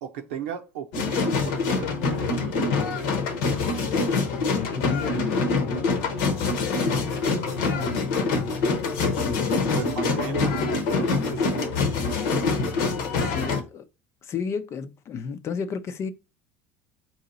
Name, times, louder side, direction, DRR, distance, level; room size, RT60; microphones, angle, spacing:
voice 1, 0.0-2.3 9.7-12.0, right 8 dB, 75° right, 0.8 m, -36 dB
sound 1, 0.9-13.6, left 4 dB, 65° left, 1.0 m, -25 dB
voice 2, 4.0-6.0 7.6-8.2 9.2-10.2 11.1-11.9 13.2-13.8 14.2-16.1, left 6 dB, 40° left, 0.6 m, -33 dB
4.6 x 2.8 x 4.0 m
hypercardioid pair, 80°, 7 cm